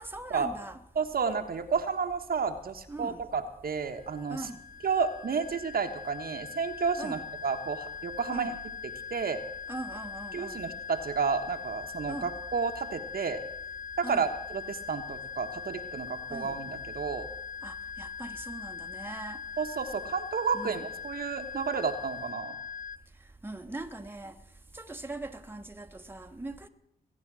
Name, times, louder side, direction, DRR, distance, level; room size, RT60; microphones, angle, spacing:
voice 1, 0.0-0.8 2.9-3.2 4.3-4.6 7.0-7.2 8.3-8.6 9.7-10.6 12.1-12.3 14.0-14.3 16.3-16.6 17.6-19.4 20.5-20.8 23.4-24.3 24.7-26.7, right 2 dB, 15° right, 5 dB, 1.3 m, -41 dB
voice 2, 1.0-4.4 4.8-8.5 9.1-9.4 10.3-13.4 14.0-17.3 19.6-22.6, right 5 dB, 65° right, 6 dB, 1.4 m, -31 dB
sound 1, 3.9-23.0, left 6 dB, 55° left, 0.6 m, -41 dB
21.0 x 9.0 x 6.2 m, 0.78 s
cardioid pair, 60°, 17 cm